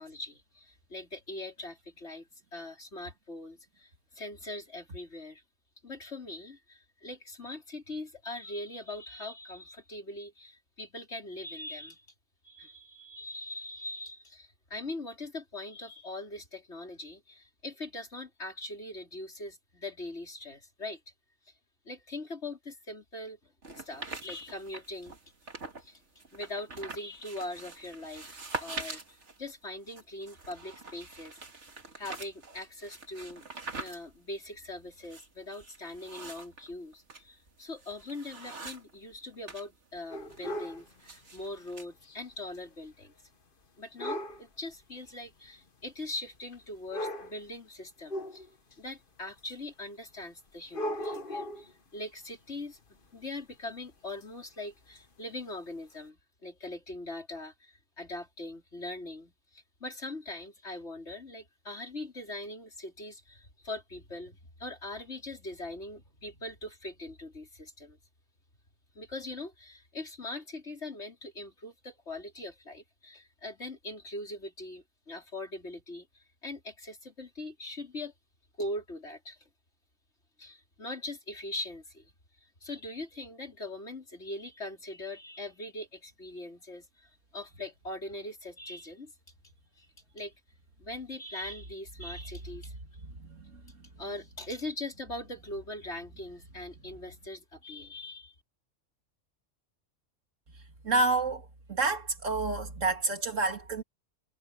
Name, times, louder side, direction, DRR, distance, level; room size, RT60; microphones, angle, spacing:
voice 1, 0.0-5.4 5.8-12.1 12.4-21.0 21.4-21.5 21.9-25.2 25.8-26.0 26.3-31.4 32.0-33.5 33.8-43.1 43.8-48.5 48.8-52.8 53.1-68.0 69.0-78.1 78.6-79.5 80.4-82.1 82.4-89.1 89.8-89.9 90.1-90.3 90.8-92.8 94.0-98.3, left 2 dB, 65° left, 5.4 m, -41 dB
sound 1, 23.6-25.9 26.2-39.7 40.0-41.8, right 3 dB, 70° right, 2.7 m, -44 dB
sound 2, 40.1-40.8 42.0-42.2 42.5-42.6 44.0-44.4 45.4-45.5 46.5-46.6 46.9-47.4 48.1-48.7 49.5-49.6 50.6-51.7 54.2-54.3 55.0-55.1 55.9-56.0, equal, 45° left, 1.6 m, -36 dB
voice 2, 93.0-93.9 100.8-103.8, right 3 dB, 90° right, 3.0 m, -29 dB
omnidirectional pair, 1.3 m